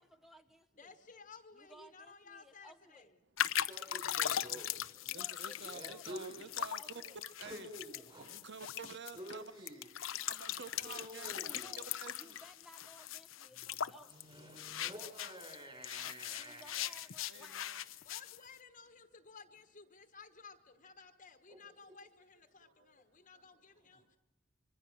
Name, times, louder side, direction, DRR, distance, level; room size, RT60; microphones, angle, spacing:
voice 1, 0.0-0.9 1.5-3.1 5.1-7.2 11.6-11.9 12.1-14.3 16.4-17.7, equal, ahead, 9 dB, 0.8 m, -59 dB
voice 2, 0.7-3.1 18.0-24.2, left 5 dB, 40° left, 8 dB, 1.3 m, -56 dB
sound 1, 3.4-15.6 15.8-18.4, left 10 dB, 80° left, 0.7 m, -40 dB
voice 3, 3.6-5.1 5.7-6.5 7.4-8.3 9.1-9.9 10.7-11.9 13.5-17.5 21.5-21.6 23.9-24.0, equal, 30° right, 4 dB, 5.4 m, -50 dB
voice 4, 5.1-7.7 8.2-9.6 10.2-12.4 17.3-17.8 21.8-21.9 22.6-22.7, right 4 dB, 60° right, 13 dB, 1.1 m, -50 dB
25.0 x 24.0 x 6.3 m, 1.0 s
head